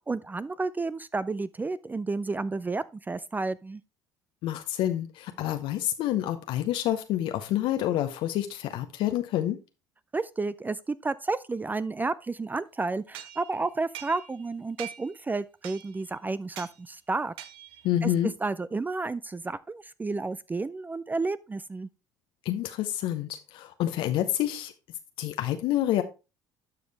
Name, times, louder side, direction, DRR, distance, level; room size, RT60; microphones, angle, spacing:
voice 1, 0.1-3.8 10.1-17.3 18.0-21.9, right 3 dB, 20° right, 0.4 m, -31 dB
voice 2, 4.4-9.6 17.8-18.3 22.4-24.7 25.2-26.0, left 12 dB, 70° left, 0.7 m, -28 dB
sound 1, 13.1-14.5 14.8-15.2 15.6-16.1 16.6-16.8 17.4-17.9, right 12 dB, 75° right, 0.7 m, -43 dB
11.5 x 5.1 x 3.4 m
hypercardioid pair, 65°, 9 cm